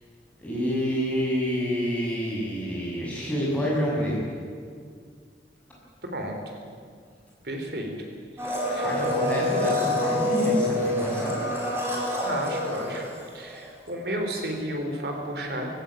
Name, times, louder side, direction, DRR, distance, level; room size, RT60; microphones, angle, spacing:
voice 1, 0.4-4.3 8.8-11.4, equal, 10° left, -5 dB, 7.1 m, -27 dB
voice 2, 7.4-7.9 8.4-9.0 12.2-13.1 13.3-15.7, right 1 dB, 65° right, 3 dB, 3.6 m, -32 dB
Domestic sounds home sounds, 8.4-13.6 13.9-14.0, left 1 dB, 15° right, 4.3 m, -27 dB
19.5 x 16.0 x 9.1 m, 2.1 s
head